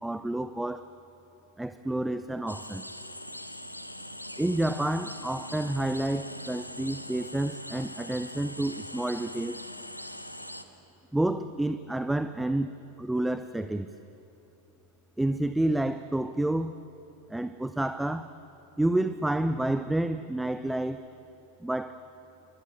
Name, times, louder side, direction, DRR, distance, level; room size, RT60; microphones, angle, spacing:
voice 1, 0.0-0.9 1.6-2.8 4.4-9.6 11.1-12.7 13.0-13.9 15.2-16.7 17.3-18.3 18.8-21.0 21.6-22.0, right 1 dB, 5° right, 11 dB, 0.7 m, -29 dB
sound 1, 2.5-10.6, left 1 dB, 90° left, 1.3 m, -42 dB
27.5 x 24.0 x 8.1 m, 2.8 s
figure-of-eight pair, 90°, 0 cm